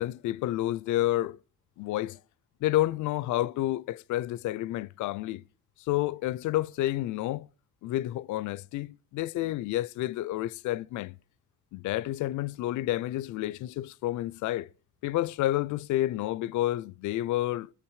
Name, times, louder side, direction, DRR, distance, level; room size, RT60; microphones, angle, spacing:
voice 1, 0.0-1.4 1.8-2.2 2.6-5.4 5.9-7.5 7.8-11.2 11.7-14.7 15.0-17.7, left 15 dB, 80° left, 0.5 m, -30 dB
19.5 x 7.0 x 4.7 m
cardioid pair, 90°, 30 cm